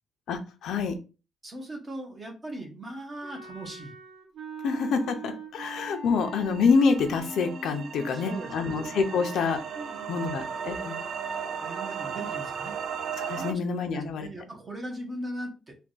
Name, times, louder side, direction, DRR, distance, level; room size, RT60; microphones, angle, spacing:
voice 1, 0.3-0.9 4.6-9.6 10.1-11.0 13.2-14.3, left 5 dB, 70° left, 6 dB, 0.6 m, -27 dB
voice 2, 1.4-3.9 8.0-8.8 9.1-10.4 11.6-12.8 13.4-15.8, right 1 dB, 25° right, 2 dB, 0.9 m, -39 dB
Wind instrument woodwind instrument, 3.2-11.8, right 2 dB, 50° right, 1.7 m, -43 dB
sound 1, 6.2-13.5, right 7 dB, 65° right, 0.4 m, -36 dB
3.4 x 2.3 x 3.9 m, 0.31 s
cardioid pair, 170°, 0 cm